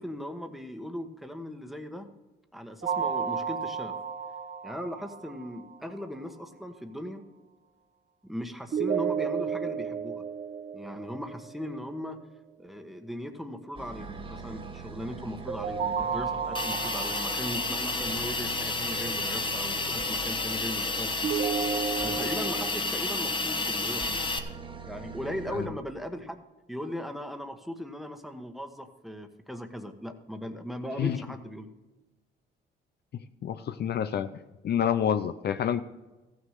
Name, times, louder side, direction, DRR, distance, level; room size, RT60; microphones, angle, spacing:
voice 1, 0.0-2.1 2.5-4.0 4.6-7.2 8.2-10.2 10.7-12.2 12.6-21.3 22.0-24.2 24.8-26.4 26.7-31.7, equal, ahead, 7 dB, 1.2 m, -38 dB
sound 1, 2.8-5.8 8.7-11.8 15.5-18.7 21.2-22.7, right 7 dB, 60° right, 1.1 m, -32 dB
sound 2, 13.8-25.7, right 4 dB, 25° right, 1.3 m, -42 dB
Hiss, 16.6-24.4, left 3 dB, 25° left, 1.2 m, -31 dB
voice 2, 33.4-35.8, left 9 dB, 55° left, 11 dB, 0.6 m, -28 dB
14.5 x 6.4 x 6.5 m, 1.1 s
cardioid pair, 90°, 20 cm